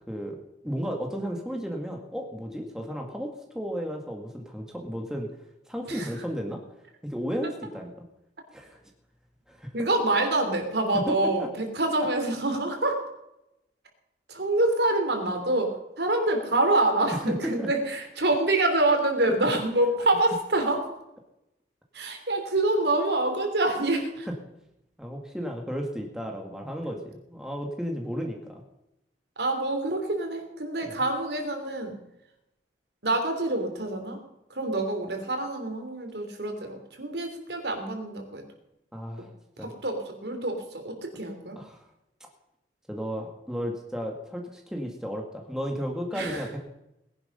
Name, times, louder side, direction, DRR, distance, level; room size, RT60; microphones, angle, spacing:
voice 1, 0.1-5.3 5.7-6.6 7.0-7.9 8.5-8.8 9.5-9.7 10.9-11.5 17.3-17.7 24.3-24.4 25.0-28.6 30.8-31.0 38.9-39.3 39.6-39.7 41.6-41.9 42.9-46.6, equal, 5° right, 1 dB, 1.8 m, -33 dB
voice 2, 9.7-13.0 14.3-20.9 21.9-24.3 29.4-32.0 33.0-34.2 34.5-38.4 39.6-41.6 46.1-46.4, right 2 dB, 75° right, 4 dB, 3.3 m, -26 dB
19.5 x 10.5 x 5.5 m, 0.86 s
head